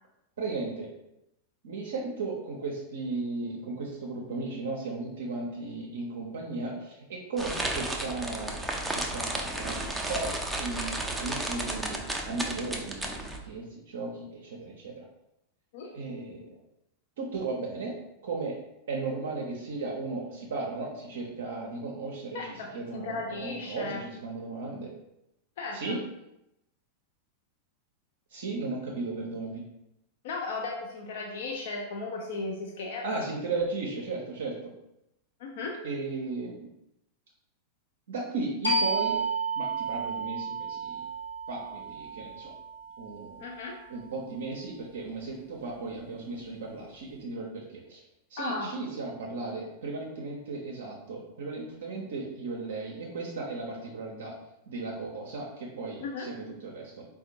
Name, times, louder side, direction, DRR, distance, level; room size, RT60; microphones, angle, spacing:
voice 1, 0.4-0.9 1.6-15.0 15.9-16.5 17.2-17.9 18.2-18.6 18.9-24.9 25.7-26.0 28.3-29.6 33.0-34.6 35.8-36.7 38.1-39.2 39.6-41.1 41.5-42.5 43.0-43.4 43.9-48.0 48.3-54.4 54.7-57.1, right 3 dB, 60° right, -1 dB, 0.5 m, -36 dB
sound 1, 7.4-13.4, right 1 dB, 5° right, 0.4 m, -33 dB
voice 2, 22.3-22.7 22.9-24.0 25.6-26.0 30.2-33.1 35.4-35.8 43.4-43.8 48.4-48.7 56.0-56.3, left 3 dB, 55° left, 0 dB, 0.4 m, -35 dB
sound 2, 38.6-43.9, right 3 dB, 85° left, 0.9 m, -32 dB
4.2 x 2.2 x 2.7 m, 0.87 s
figure-of-eight pair, 90°, 0 cm